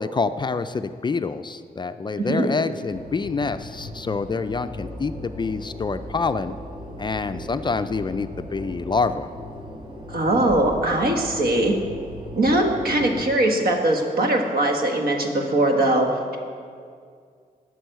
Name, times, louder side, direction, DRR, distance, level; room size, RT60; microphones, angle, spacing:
voice 1, 0.0-6.5 7.0-9.3 12.9-13.3, left 4 dB, 30° left, 10 dB, 0.3 m, -27 dB
voice 2, 2.2-2.5 10.1-11.7 12.4-16.4, right 1 dB, 70° right, 2 dB, 1.6 m, -21 dB
sound 1, 2.9-13.2, left 1 dB, 30° right, 1.3 m, -38 dB
12.5 x 6.3 x 9.0 m, 2.2 s
wide cardioid pair, 145°, 16 cm